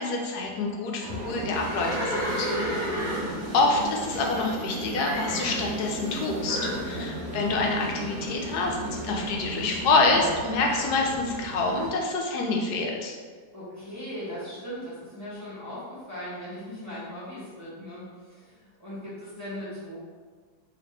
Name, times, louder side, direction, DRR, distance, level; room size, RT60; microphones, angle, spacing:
voice 1, 0.0-2.5 3.5-6.6 6.9-8.8 9.0-13.1, left 3 dB, 75° left, 0 dB, 1.1 m, -26 dB
sound 1, 1.0-11.9, right 1 dB, 85° right, 1.4 m, -35 dB
Livestock farm animals working animals, 1.5-4.6 5.0-5.7 6.4-6.8, equal, 40° right, 1.0 m, -32 dB
voice 2, 2.5-2.8 6.6-7.0 13.5-20.0, equal, 10° right, -10 dB, 1.0 m, -39 dB
3.3 x 2.9 x 3.2 m, 1.5 s
omnidirectional pair, 1.8 m